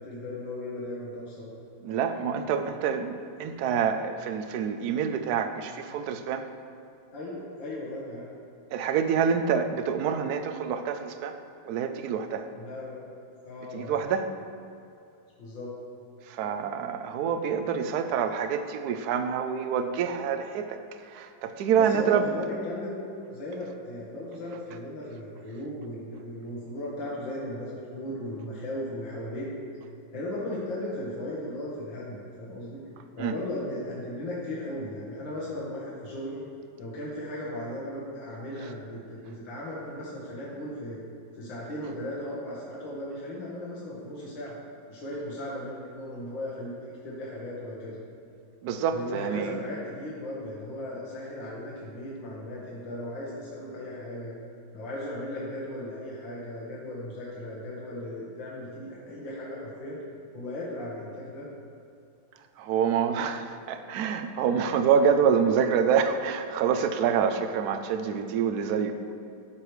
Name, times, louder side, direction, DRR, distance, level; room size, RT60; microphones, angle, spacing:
voice 1, 0.0-1.5 7.1-8.3 12.6-13.0 13.5-14.0 15.4-15.7 21.7-22.9 23.3-29.5 30.1-32.8 33.2-36.4 36.8-41.0 41.4-44.6 44.9-48.0 48.9-54.4 54.7-60.0 60.3-61.5, left 1 dB, 70° left, -7 dB, 2.2 m, -37 dB
voice 2, 1.8-6.5 8.7-11.4 11.6-12.5 13.7-14.3 16.3-20.8 21.1-22.3 33.2-33.3 48.6-49.6 62.6-69.1, right 7 dB, 70° right, 8 dB, 0.9 m, -27 dB
13.0 x 4.8 x 4.8 m, 2.6 s
omnidirectional pair, 2.2 m